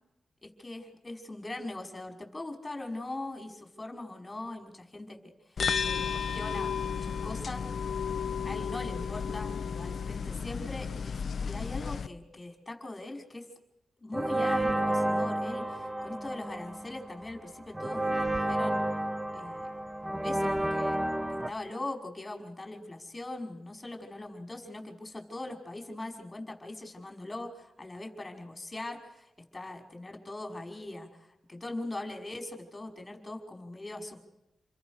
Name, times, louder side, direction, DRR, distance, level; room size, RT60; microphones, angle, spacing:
voice 1, 0.4-7.7 8.1-13.5 14.0-18.8 19.3-19.8 20.2-21.0 21.3-34.2, left 2 dB, 25° left, 3 dB, 5.3 m, -41 dB
sound 1, 5.6-12.1, left 6 dB, 60° left, 0.9 m, -33 dB
sound 2, 14.1-21.5, right 1 dB, 15° right, 1.3 m, -31 dB
29.0 x 22.5 x 6.6 m, 0.91 s
cardioid pair, 85°, 0 cm